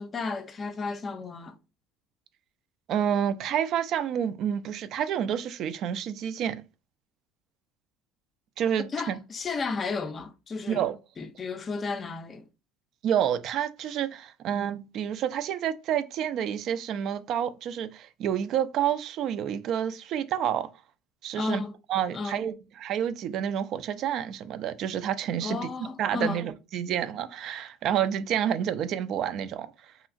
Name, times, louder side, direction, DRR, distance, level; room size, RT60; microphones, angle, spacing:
voice 1, 0.0-1.6 8.9-10.8 11.2-12.5 21.3-21.7 22.1-22.5 25.4-26.5, left 4 dB, 30° left, 0.4 m, -33 dB
voice 2, 2.9-6.6 8.6-9.2 10.7-11.0 13.0-20.7 21.2-21.6 21.9-25.6 26.0-29.7, right 9 dB, 55° right, 0.3 m, -29 dB
2.9 x 2.4 x 2.4 m
supercardioid pair, 85°, 0 cm